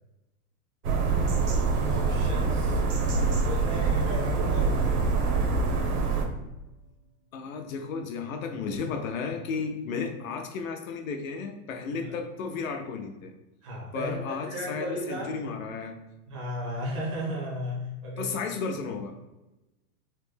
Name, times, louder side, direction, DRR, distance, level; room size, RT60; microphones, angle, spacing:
sound 1, 0.8-6.3, right 4 dB, 80° right, 0.8 m, -25 dB
sound 2, 1.4-6.7, right 4 dB, 50° left, 0.8 m, -37 dB
voice 1, 1.9-2.8 3.3-5.1 12.0-12.2 13.6-15.4 16.3-18.4, equal, 25° right, -5 dB, 0.4 m, -35 dB
voice 2, 2.9-3.4 4.0-4.1 7.3-13.3 13.9-16.0 18.2-19.1, left 5 dB, 65° left, 4 dB, 0.5 m, -34 dB
3.1 x 2.1 x 3.2 m, 1.0 s
supercardioid pair, 175°, 45 cm